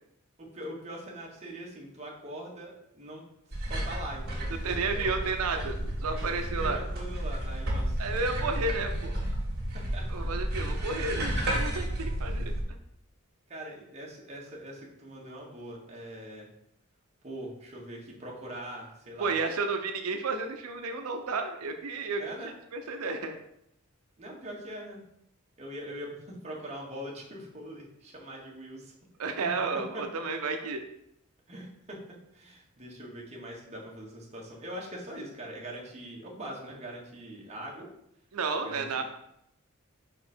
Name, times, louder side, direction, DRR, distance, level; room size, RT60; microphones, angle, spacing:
voice 1, 0.4-3.2 3.5-5.1 6.1-8.7 9.7-10.1 12.2-12.3 13.5-16.5 17.2-19.3 22.2-22.5 24.2-25.0 25.6-28.9 29.4-29.6 29.9-30.0 31.5-32.0 32.3-37.9 38.6-38.9, right 1 dB, 30° right, -2 dB, 1.4 m, -42 dB
sound 1, 3.5-12.6, right 1 dB, 50° right, 1.8 m, -32 dB
voice 2, 4.6-6.8 8.0-9.2 10.1-12.5 19.2-23.4 29.2-30.8 38.3-39.0, right 4 dB, 90° right, 5 dB, 0.6 m, -32 dB
5.3 x 4.2 x 4.3 m, 0.78 s
head